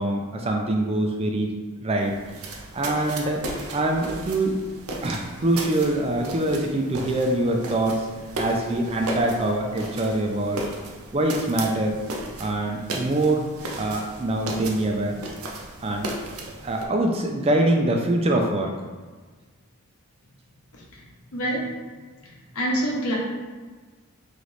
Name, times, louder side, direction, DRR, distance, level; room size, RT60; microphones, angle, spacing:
voice 1, 0.0-1.5 1.8-2.1 2.7-3.4 3.7-4.6 5.0-8.1 8.4-10.7 11.1-12.0 12.4-13.5 13.8-15.2 15.8-16.1 16.6-18.7, right 1 dB, 25° right, 1 dB, 0.4 m, -24 dB
sound 1, 2.0-16.9, right 2 dB, 80° right, 0.6 m, -36 dB
voice 2, 21.3-21.6 22.5-23.2, right 1 dB, 80° left, -3 dB, 0.9 m, -25 dB
3.3 x 3.0 x 3.9 m, 1.4 s
head